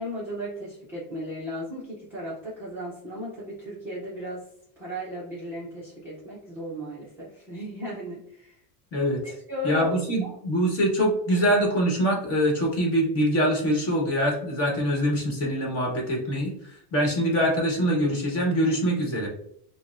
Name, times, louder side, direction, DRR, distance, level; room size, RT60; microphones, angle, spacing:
voice 1, 0.0-4.5 4.8-8.6 9.3-10.4, equal, 5° right, -10 dB, 0.4 m, -35 dB
voice 2, 9.6-16.5 16.9-19.3, equal, 35° left, 0 dB, 1.0 m, -24 dB
5.8 x 2.0 x 2.4 m, 0.70 s
cardioid pair, 175°, 44 cm